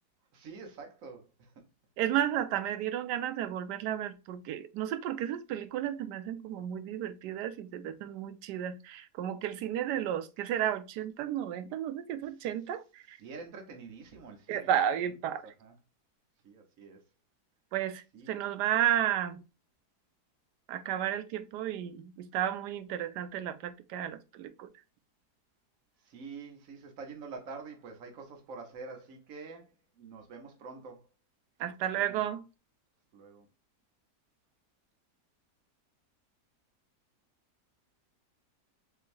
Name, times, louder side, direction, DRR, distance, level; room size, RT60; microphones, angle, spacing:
voice 1, 0.3-1.5 13.2-14.8 15.2-15.7 16.4-17.0 18.1-18.3 26.0-29.7 29.9-31.1 32.0-32.3 33.1-33.5, right 4 dB, 55° right, 1.4 m, -46 dB
voice 2, 2.0-13.2 14.5-15.4 17.7-19.4 20.7-24.7 31.6-32.4, right 10 dB, 85° right, 1.2 m, -33 dB
4.6 x 3.1 x 2.5 m
omnidirectional pair, 1.7 m